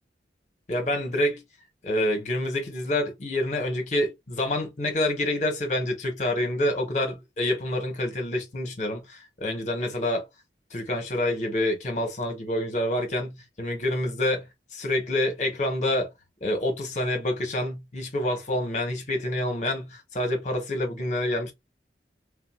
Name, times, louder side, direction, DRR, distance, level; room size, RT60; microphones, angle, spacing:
voice 1, 0.7-1.4 1.8-10.2 10.7-14.5 14.7-16.1 16.4-21.5, left 1 dB, 40° left, 1.1 m, -27 dB
3.6 x 2.5 x 2.4 m
head